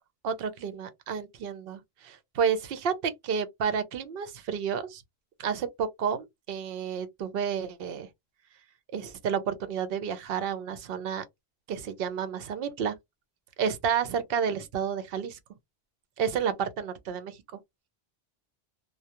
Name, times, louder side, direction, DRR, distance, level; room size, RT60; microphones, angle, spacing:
voice 1, 0.2-5.0 5.4-8.1 8.9-11.2 11.7-12.9 13.6-15.4 16.2-17.4, right 7 dB, 70° right, 0.7 m, -30 dB
2.2 x 2.1 x 2.7 m
omnidirectional pair, 1.0 m